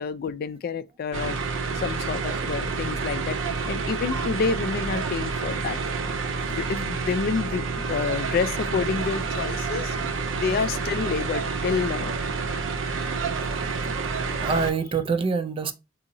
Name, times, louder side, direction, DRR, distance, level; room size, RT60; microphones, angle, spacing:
voice 1, 0.0-1.4 1.7-3.4 3.7-5.8 6.5-10.0 10.3-12.2, left 5 dB, 50° left, 0.3 m, -28 dB
sound 1, 1.1-14.7, right 4 dB, 85° right, 0.5 m, -29 dB
voice 2, 13.3-15.7, right 5 dB, 30° right, 0.3 m, -28 dB
3.9 x 2.7 x 2.6 m
head